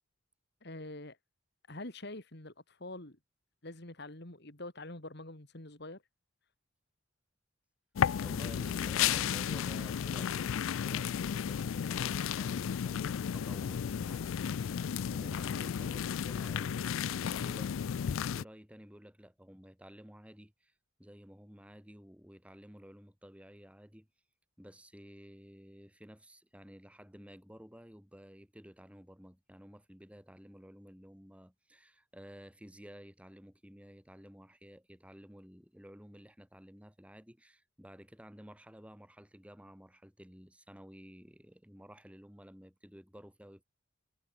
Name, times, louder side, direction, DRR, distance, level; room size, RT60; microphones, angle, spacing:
voice 1, 0.6-1.2 1.7-3.2 3.6-6.0, left 2 dB, 55° left, 2.8 m, -45 dB
sound 1, 8.0-18.4, left 8 dB, 75° left, 0.4 m, -33 dB
voice 2, 8.2-17.7 18.1-20.7 21.0-24.1 24.6-43.6, equal, 5° right, 6.5 m, -53 dB
head